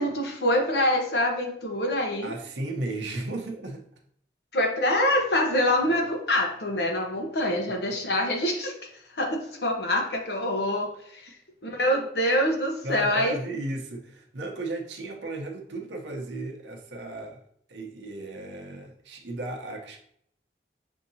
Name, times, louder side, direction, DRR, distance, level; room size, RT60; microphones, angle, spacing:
voice 1, 0.0-2.3 4.5-8.7 9.1-11.2 11.6-13.4, left 1 dB, 65° left, 2 dB, 0.9 m, -25 dB
voice 2, 2.2-3.8 12.8-17.4 17.7-20.0, right 2 dB, 85° right, 2 dB, 0.7 m, -35 dB
6.3 x 2.7 x 2.7 m, 0.68 s
head